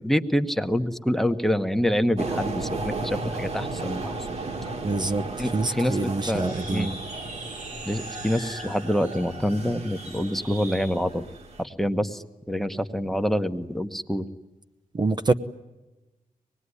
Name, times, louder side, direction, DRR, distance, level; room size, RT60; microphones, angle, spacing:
voice 1, 0.0-4.1 5.4-7.0 7.9-11.3 11.6-14.2, equal, ahead, 10 dB, 1.1 m, -26 dB
sound 1, 2.2-11.6, right 3 dB, 50° right, 2.1 m, -35 dB
voice 2, 4.8-6.9 14.9-15.3, right 3 dB, 30° right, 8 dB, 0.9 m, -26 dB
sound 2, 6.2-10.9, right 2 dB, 90° right, 6.4 m, -42 dB
25.0 x 20.0 x 9.8 m, 1.1 s
wide cardioid pair, 160°, 14 cm